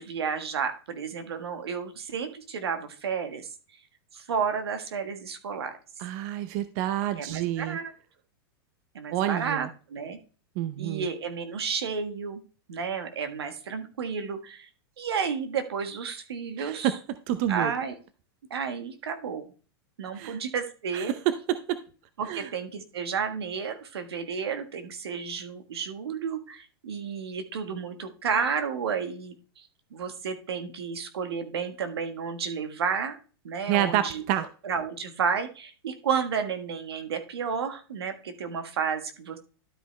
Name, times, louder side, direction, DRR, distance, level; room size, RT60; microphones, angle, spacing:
voice 1, 0.0-3.5 4.1-5.7 7.0-7.9 8.9-10.2 10.8-12.4 12.7-14.7 15.0-16.9 17.5-17.9 18.5-19.4 20.0-21.1 22.2-33.2 33.4-34.2 34.6-39.4, right 6 dB, 85° right, 7 dB, 1.4 m, -32 dB
voice 2, 6.0-7.8 9.1-9.7 10.6-11.1 16.6-17.0 17.3-17.7 20.1-20.4 20.9-21.8 22.3-22.5 33.7-34.5, right 12 dB, 50° right, 12 dB, 0.7 m, -28 dB
12.0 x 5.1 x 3.3 m, 0.37 s
hypercardioid pair, 125°, 13 cm